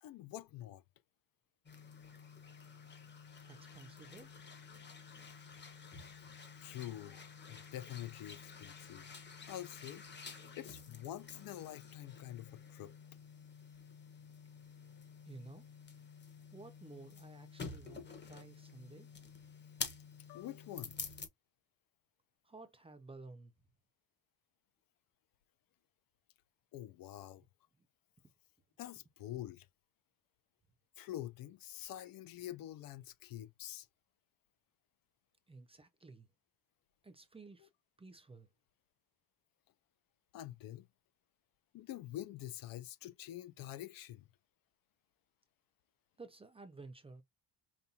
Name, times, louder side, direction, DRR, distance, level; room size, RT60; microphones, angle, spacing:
voice 1, 0.0-0.8 6.6-7.2 7.5-9.1 9.5-10.1 10.6-12.9 20.3-21.0 26.7-27.4 28.8-29.7 31.0-33.9 40.3-40.9 41.7-44.3, left 13 dB, 55° left, 0.5 m, -46 dB
sound 1, 1.6-21.3, left 5 dB, 25° left, 1.1 m, -50 dB
voice 2, 3.4-4.3 15.3-15.7 16.5-19.1 22.4-23.5 27.8-27.9 35.5-36.3 37.0-37.7 38.0-38.5 46.2-47.2, right 3 dB, 15° right, 0.5 m, -54 dB
5.3 x 2.3 x 2.7 m
cardioid pair, 125°, 43 cm